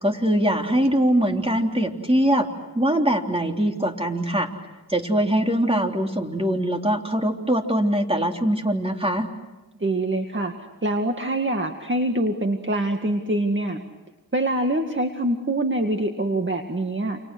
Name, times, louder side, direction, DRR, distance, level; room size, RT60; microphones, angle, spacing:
voice 1, 0.0-2.5 2.7-4.5 4.9-9.3, right 1 dB, 15° right, 3 dB, 3.5 m, -22 dB
voice 2, 9.8-10.5 10.8-13.8 14.3-17.2, right 1 dB, 35° right, 4 dB, 2.1 m, -24 dB
29.5 x 28.5 x 6.3 m, 1.1 s
cardioid pair, 55°, 35 cm